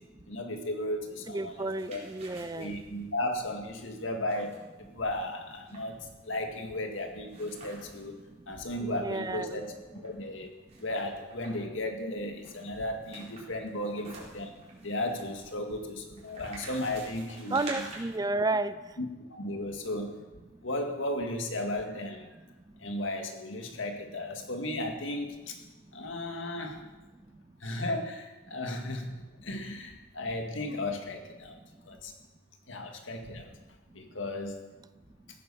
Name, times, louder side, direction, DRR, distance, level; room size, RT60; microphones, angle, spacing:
voice 1, 0.3-2.0 2.5-8.2 8.5-10.6 10.8-14.5 14.8-17.9 19.0-20.1 20.6-22.3 22.8-25.6 25.9-26.8 27.6-31.6 31.9-32.1 32.7-33.5 33.9-34.6, left 1 dB, 90° left, 4 dB, 2.0 m, -35 dB
voice 2, 1.3-2.7 8.8-9.6 17.5-18.7, right 2 dB, 20° right, 13 dB, 0.5 m, -31 dB
sound 1, 1.4-8.1 8.5-8.6 8.8-10.1 10.7-11.7 12.4-18.2, right 2 dB, 35° right, 3.9 m, -49 dB
15.0 x 9.8 x 6.9 m, 1.2 s
head